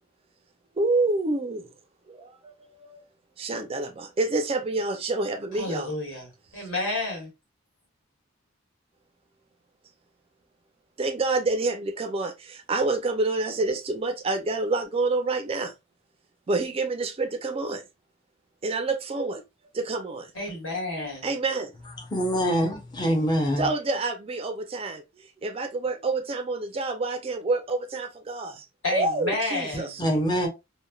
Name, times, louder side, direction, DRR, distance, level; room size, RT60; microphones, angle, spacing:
voice 1, 0.8-1.7 2.1-3.0 3.4-5.9 11.0-15.7 16.5-17.8 18.6-19.4 19.7-20.3 21.2-21.7 23.6-25.0 25.4-28.7 28.9-30.0, right 3 dB, 30° right, 0.4 m, -28 dB
voice 2, 5.6-6.3 6.6-7.3 20.3-21.3 28.8-29.9, left 2 dB, 80° left, 1.5 m, -30 dB
voice 3, 22.1-23.7 30.0-30.5, equal, 20° left, 0.6 m, -24 dB
3.1 x 2.1 x 2.2 m
head